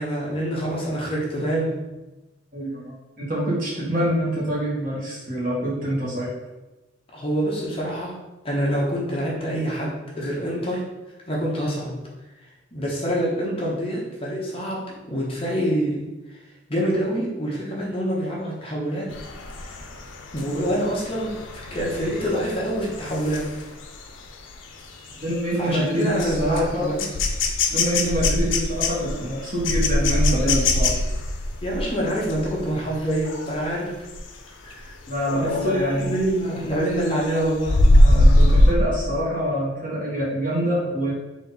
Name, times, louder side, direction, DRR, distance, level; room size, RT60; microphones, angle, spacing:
voice 1, 0.0-1.8 7.1-8.2 8.4-10.9 11.3-12.0 12.7-16.1 16.7-19.2 19.6-19.8 20.3-21.4 21.7-23.5 25.6-27.0 31.6-34.1 34.6-34.9 35.3-35.7 36.0-37.8, equal, 30° left, -4 dB, 0.9 m, -26 dB
voice 2, 2.5-6.3 25.2-27.1 27.7-30.9 35.1-36.1 38.0-41.1, equal, 45° right, -5 dB, 1.4 m, -25 dB
sound 1, 19.1-33.7 34.1-34.4 34.7-36.4 36.7-38.7, left 1 dB, 80° left, 0.5 m, -22 dB
4.1 x 2.8 x 4.0 m, 1.1 s
head